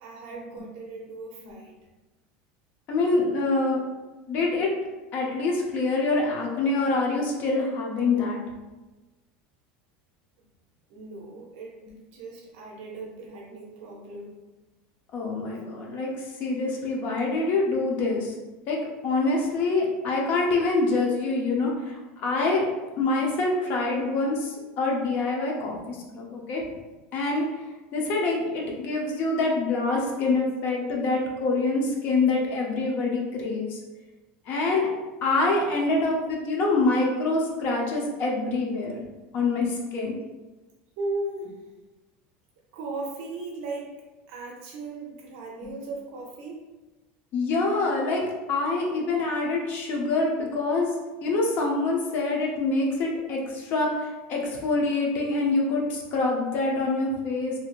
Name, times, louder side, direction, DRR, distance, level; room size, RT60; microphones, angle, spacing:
voice 1, 0.0-1.7 10.9-14.3 41.0-41.6 42.7-43.9 44.3-46.7, right 2 dB, 65° right, -1 dB, 0.6 m, -37 dB
voice 2, 2.9-3.8 4.3-4.7 5.1-8.4 15.1-18.3 18.7-18.8 19.0-22.7 23.0-26.6 27.1-27.5 27.9-33.8 34.5-34.9 35.2-39.0 39.3-40.1 45.6-45.7 47.3-50.9 51.2-57.5, left 3 dB, 40° left, -1 dB, 0.6 m, -25 dB
3.0 x 2.7 x 2.4 m, 1.1 s
supercardioid pair, 165°, 5 cm